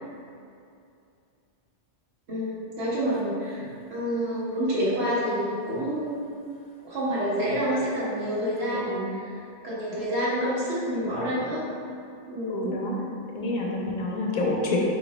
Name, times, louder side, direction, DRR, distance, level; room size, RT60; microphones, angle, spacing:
voice 1, 2.3-6.2 6.8-9.3 9.6-11.6 12.3-12.7, equal, 65° right, -9 dB, 1.5 m, -28 dB
voice 2, 12.5-13.0 13.3-14.8, left 2 dB, 50° left, -2 dB, 0.7 m, -28 dB
4.6 x 4.5 x 2.2 m, 2.4 s
omnidirectional pair, 1.2 m